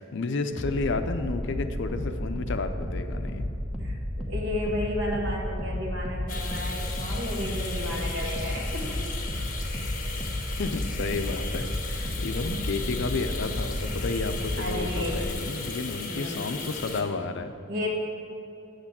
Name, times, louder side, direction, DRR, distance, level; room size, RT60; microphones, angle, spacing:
voice 1, 0.0-3.5 10.6-17.5, left 3 dB, 60° left, 8 dB, 0.5 m, -31 dB
sound 1, 0.5-15.3, left 1 dB, ahead, 1.0 m, -32 dB
voice 2, 3.8-9.0 12.1-12.2 12.4-12.7 14.6-15.3 16.0-16.6 17.7-17.9, left 1 dB, 60° right, -2 dB, 1.8 m, -33 dB
sound 2, 6.3-17.0, left 4 dB, 40° left, 1.2 m, -37 dB
8.0 x 6.5 x 7.4 m, 2.9 s
head